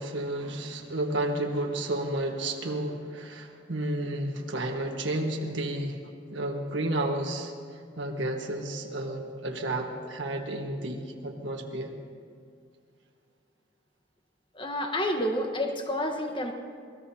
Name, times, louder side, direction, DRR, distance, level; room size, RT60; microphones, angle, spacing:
voice 1, 0.0-6.0 6.3-7.5 8.0-11.9, right 1 dB, 85° right, 1 dB, 1.5 m, -31 dB
voice 2, 14.5-16.5, left 1 dB, 25° left, 4 dB, 1.2 m, -29 dB
26.0 x 19.0 x 2.8 m, 2.2 s
head